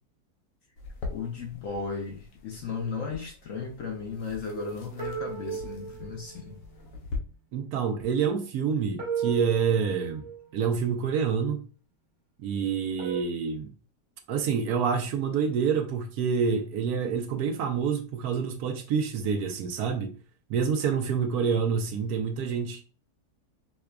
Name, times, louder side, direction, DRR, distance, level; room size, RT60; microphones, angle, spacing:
sound 1, 0.8-7.2, left 3 dB, 85° left, 1.4 m, -42 dB
voice 1, 1.1-6.6, left 4 dB, 60° left, 0.9 m, -35 dB
sound 2, 5.0-6.6 9.0-10.7 13.0-13.2, right 7 dB, 40° right, 1.0 m, -33 dB
voice 2, 7.5-10.2 10.5-11.6 12.4-13.7 14.3-20.1 20.5-22.8, right 6 dB, 75° right, 1.0 m, -27 dB
5.7 x 2.3 x 2.2 m
omnidirectional pair, 1.8 m